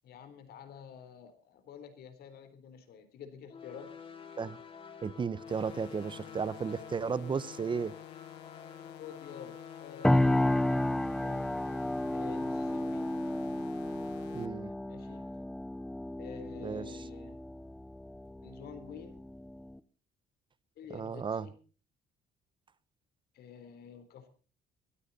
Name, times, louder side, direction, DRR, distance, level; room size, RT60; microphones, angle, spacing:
voice 1, 0.0-3.9 8.8-10.5 11.2-11.5 12.1-13.1 14.8-15.3 16.2-17.4 18.4-19.2 20.8-21.5 23.3-24.3, left 7 dB, 70° left, 3.8 m, -49 dB
sound 1, 3.5-10.9, left 6 dB, 35° left, 3.9 m, -49 dB
voice 2, 5.0-7.9 14.3-14.7 16.6-17.0 20.9-21.5, right 5 dB, 30° right, 0.9 m, -34 dB
sound 2, 5.5-14.5, left 16 dB, 85° left, 1.4 m, -52 dB
sound 3, 10.0-19.8, left 1 dB, 5° left, 0.8 m, -32 dB
21.5 x 13.0 x 4.2 m
cardioid pair, 110°, 17 cm